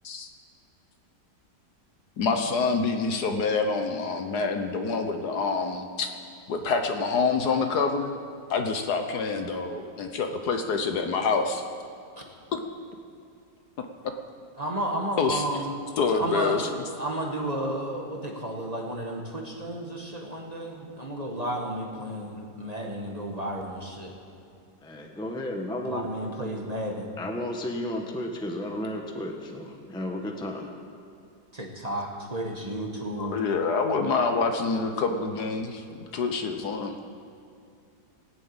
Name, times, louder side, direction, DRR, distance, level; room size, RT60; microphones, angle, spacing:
voice 1, 2.2-6.1 6.5-8.1 8.5-11.6 12.5-12.6 15.2-15.4 16.0-16.8 33.2-36.9, left 4 dB, 65° left, 5 dB, 1.4 m, -26 dB
voice 2, 14.6-15.7 16.2-16.6 17.0-24.1 25.8-27.1 31.5-33.3, right 1 dB, 20° right, 0 dB, 1.5 m, -32 dB
voice 3, 24.8-26.1 27.2-30.7, left 1 dB, 5° left, 2 dB, 0.9 m, -33 dB
18.5 x 7.5 x 8.8 m, 2.5 s
omnidirectional pair, 2.0 m